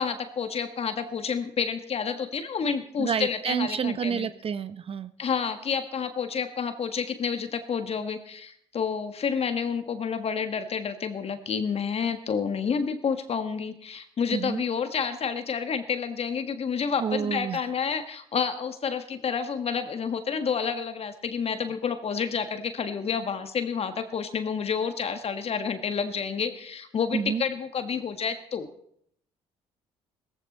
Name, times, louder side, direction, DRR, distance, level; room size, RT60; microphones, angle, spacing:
voice 1, 0.0-4.3 5.2-28.7, left 6 dB, 45° left, 8 dB, 1.6 m, -29 dB
voice 2, 3.0-5.1 14.3-14.6 17.0-17.6 27.1-27.4, right 7 dB, 40° right, 13 dB, 0.9 m, -29 dB
17.5 x 15.0 x 4.2 m, 0.70 s
hypercardioid pair, 55°, 14 cm